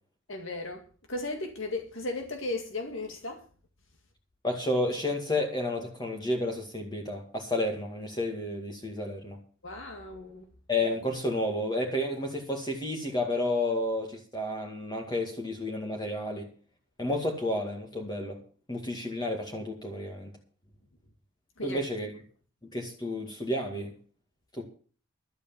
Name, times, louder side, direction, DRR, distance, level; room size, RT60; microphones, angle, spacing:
voice 1, 0.3-0.8 1.1-3.4 9.6-10.4 21.6-21.8, left 2 dB, 70° left, 2.1 m, -35 dB
voice 2, 4.4-9.4 10.7-16.5 17.0-18.4 18.7-20.3 21.6-22.1 22.7-23.9 24.5-24.6, left 1 dB, 20° left, 2.2 m, -31 dB
12.0 x 8.5 x 7.2 m
head